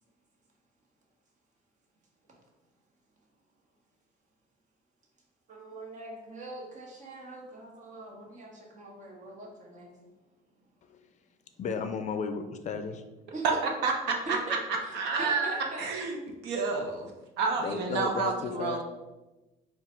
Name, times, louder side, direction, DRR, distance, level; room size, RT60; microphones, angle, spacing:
voice 1, 5.5-9.9 13.3-13.5 14.3-15.8, right 2 dB, 45° right, -1 dB, 1.1 m, -42 dB
voice 2, 11.6-13.0 17.6-18.8, left 5 dB, 45° left, 8 dB, 0.4 m, -33 dB
voice 3, 13.8-14.2 14.9-16.2 16.4-17.1 17.4-18.8, right 4 dB, 85° right, 2 dB, 0.7 m, -30 dB
3.8 x 2.4 x 4.3 m, 1.1 s
cardioid pair, 110°, 17 cm